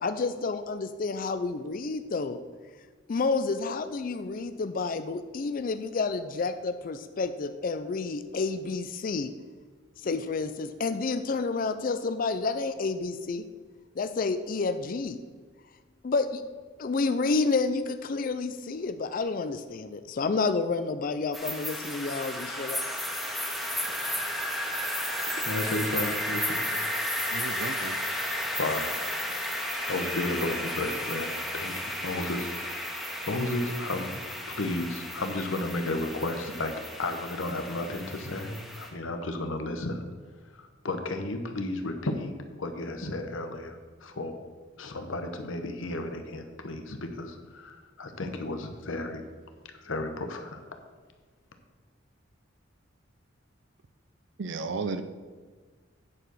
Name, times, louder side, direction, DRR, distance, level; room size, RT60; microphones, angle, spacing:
voice 1, 0.0-2.4 3.1-9.3 10.0-13.4 14.0-15.2 16.0-16.4 16.8-22.8, left 4 dB, 45° left, 10 dB, 0.4 m, -29 dB
sound 1, 21.3-38.9, equal, ahead, 1.5 m, -33 dB
voice 2, 25.4-26.6 28.6-28.9 29.8-33.0 33.3-34.2 34.5-36.7 37.0-40.1 40.5-44.4 44.8-49.2 49.8-50.6, left 2 dB, 85° left, 6 dB, 1.0 m, -33 dB
voice 3, 27.3-28.0 54.4-55.0, right 4 dB, 65° right, 10 dB, 0.5 m, -33 dB
9.7 x 4.8 x 6.2 m, 1.5 s
head